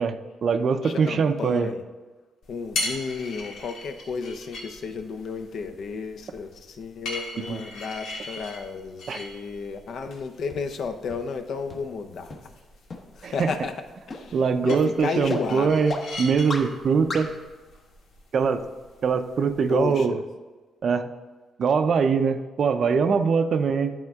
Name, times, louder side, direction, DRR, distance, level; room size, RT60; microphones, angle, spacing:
voice 1, 0.0-1.7 7.4-7.6 9.1-9.2 13.2-13.5 14.3-17.3 18.3-18.6 19.0-20.2 20.8-21.1 21.6-23.9, right 5 dB, 50° right, 9 dB, 0.5 m, -23 dB
voice 2, 0.8-1.8 2.5-12.4 13.2-13.7 14.1-15.8 19.7-20.2, left 5 dB, 60° left, 7 dB, 0.6 m, -32 dB
sound 1, 2.4-19.9, left 2 dB, 85° left, 1.7 m, -40 dB
sound 2, 10.5-10.6 11.1-11.2 11.7-11.8 12.3-12.4 12.9-13.0 13.5-13.6 14.1-14.2 14.7-14.8 15.3-15.4 15.9-16.0 16.5-16.6 17.1-17.2, left 3 dB, 35° left, 0.9 m, -32 dB
10.5 x 4.3 x 3.5 m, 1.3 s
cardioid pair, 130°, 0 cm